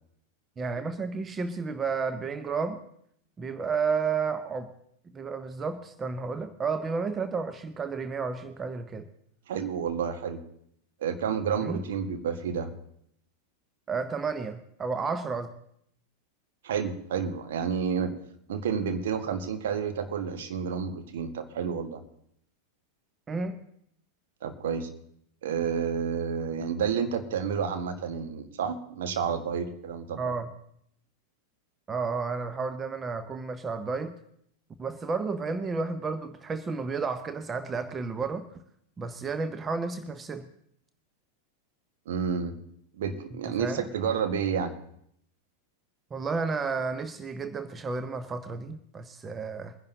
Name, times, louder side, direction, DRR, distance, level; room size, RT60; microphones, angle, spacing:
voice 1, 0.6-2.8 3.4-4.7 5.1-9.1 11.6-11.8 13.9-15.5 23.3-23.6 30.2-30.5 31.9-34.1 34.8-38.5 39.0-40.4 43.6-43.8 46.1-49.7, right 4 dB, 20° right, 10 dB, 0.8 m, -32 dB
voice 2, 9.5-10.4 11.0-12.7 16.6-18.1 18.5-22.0 24.4-24.9 25.4-30.2 42.0-42.5 43.0-44.7, right 7 dB, 60° right, 7 dB, 1.5 m, -30 dB
22.5 x 10.5 x 2.8 m, 0.70 s
figure-of-eight pair, 90°, 0 cm